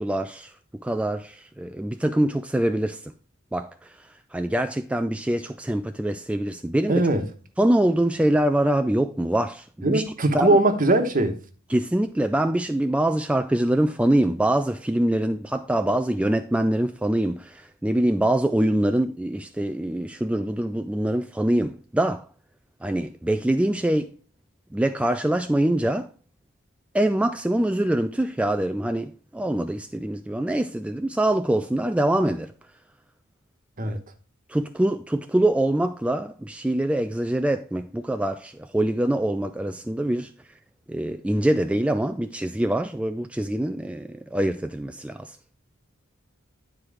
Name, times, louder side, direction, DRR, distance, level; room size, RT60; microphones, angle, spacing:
voice 1, 0.0-3.1 3.5-7.1 7.6-10.0 10.3-10.6 11.7-22.3 22.8-24.1 24.7-26.1 26.9-32.5 33.8-34.0 34.5-40.3 40.9-45.6, right 1 dB, 5° right, 0.3 m, -24 dB
voice 2, 6.9-7.2 9.8-11.4 33.8-34.0, right 2 dB, 40° right, 1.1 m, -20 dB
9.8 x 4.6 x 4.8 m
head